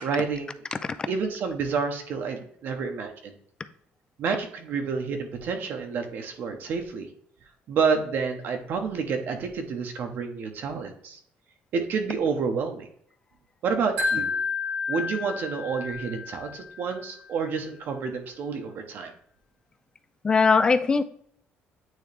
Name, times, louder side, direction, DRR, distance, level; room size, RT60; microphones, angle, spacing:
voice 1, 0.0-0.6 1.1-3.4 4.2-7.1 7.7-11.2 11.7-12.9 13.6-14.3 14.9-19.1, right 5 dB, 55° right, 4 dB, 0.9 m, -29 dB
Wind chime, 14.0-17.1, left 4 dB, 80° right, 1.8 m, -30 dB
voice 2, 20.2-21.0, left 4 dB, 20° left, 13 dB, 0.4 m, -21 dB
9.1 x 3.1 x 3.3 m, 0.64 s
cardioid pair, 150°, 4 cm